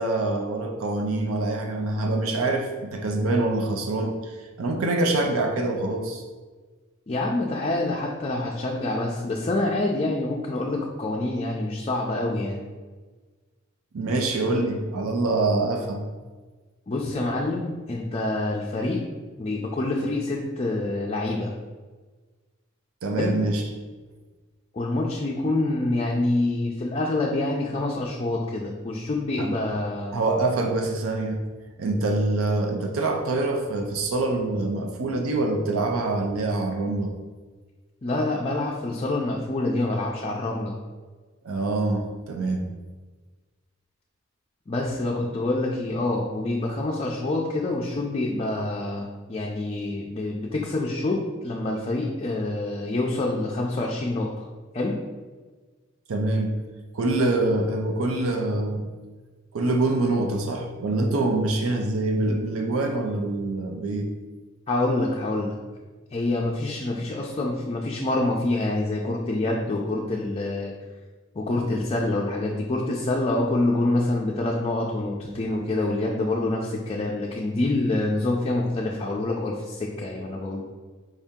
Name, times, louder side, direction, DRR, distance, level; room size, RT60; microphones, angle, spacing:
voice 1, 0.0-6.2 13.9-16.0 23.0-23.6 29.4-29.5 30.1-31.4 31.8-37.1 41.4-42.7 56.1-56.6 56.9-58.9 59.5-64.1, right 2 dB, 85° right, 3 dB, 0.5 m, -25 dB
voice 2, 7.1-12.6 16.9-19.0 19.4-21.5 23.2-23.4 24.7-30.1 38.0-40.7 44.7-54.4 54.7-55.0 64.7-65.6 66.1-70.7 71.4-80.6, left 2 dB, 30° left, -2 dB, 0.4 m, -26 dB
4.8 x 2.7 x 3.6 m, 1.4 s
head